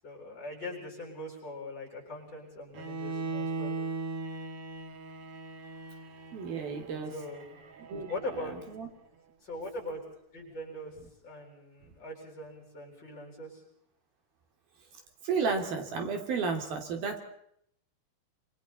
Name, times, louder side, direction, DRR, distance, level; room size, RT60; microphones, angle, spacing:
voice 1, 0.0-3.8 7.1-7.4 8.1-8.5 9.4-10.0 10.3-11.0 11.2-13.6, left 1 dB, 25° left, -1 dB, 8.4 m, -41 dB
Bowed string instrument, 2.7-8.8, right 3 dB, 55° right, 1.7 m, -39 dB
voice 2, 6.3-7.1 7.9-8.1 8.8-8.9 15.2-17.2, right 5 dB, 75° right, 4 dB, 4.6 m, -32 dB
27.5 x 27.0 x 4.2 m, 0.71 s
omnidirectional pair, 4.3 m